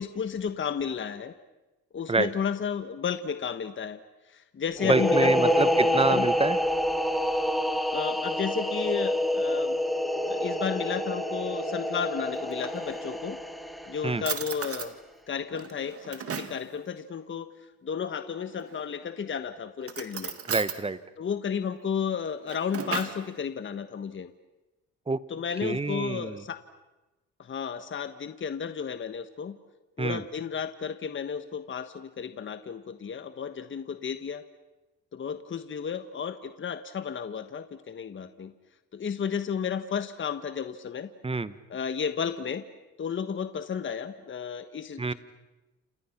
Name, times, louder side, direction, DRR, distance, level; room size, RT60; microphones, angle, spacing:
voice 1, 0.0-1.3 1.9-4.0 4.3-6.3 7.9-9.8 10.3-13.4 13.9-14.9 15.3-17.5 17.8-20.3 21.2-24.3 25.3-26.6 27.4-29.6 30.0-34.4 35.1-38.5 38.9-41.1 41.7-42.6 43.0-45.1, left 7 dB, 40° left, 10 dB, 1.3 m, -33 dB
sound 1, 4.8-14.3, equal, ahead, 2.3 m, -27 dB
voice 2, 4.8-6.6 14.0-14.2 20.5-21.0 25.1-25.2 25.6-26.4 30.0-30.2 41.2-41.5 45.0-45.1, right 3 dB, 20° right, 14 dB, 1.2 m, -27 dB
Drawer open or close, 12.3-13.3 13.8-13.9 14.2-14.9 15.5-16.6 18.5-19.1 19.8-20.8 22.2-23.3, right 7 dB, 50° right, 2.3 m, -36 dB
29.5 x 28.0 x 6.0 m, 1.1 s
cardioid pair, 90°, 30 cm